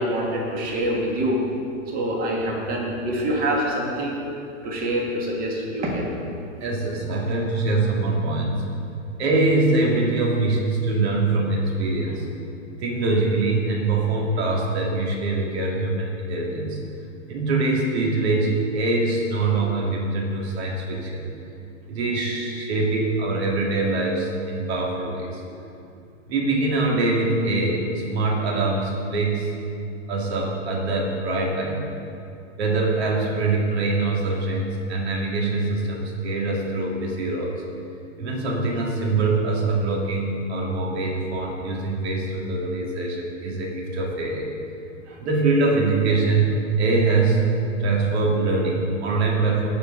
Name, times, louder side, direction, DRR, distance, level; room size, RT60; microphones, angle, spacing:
voice 1, 0.0-1.4 1.9-4.2 4.6-6.1, right 1 dB, 20° right, -1 dB, 1.8 m, -25 dB
voice 2, 6.6-8.7 9.2-12.3 12.8-16.8 17.3-21.2 21.9-25.4 26.3-29.5 30.1-31.8 32.6-37.5 38.2-44.5 45.1-47.5 47.8-49.7, right 3 dB, 55° right, -1 dB, 2.5 m, -23 dB
18.0 x 6.8 x 3.9 m, 2.6 s
hypercardioid pair, 145°, 40 cm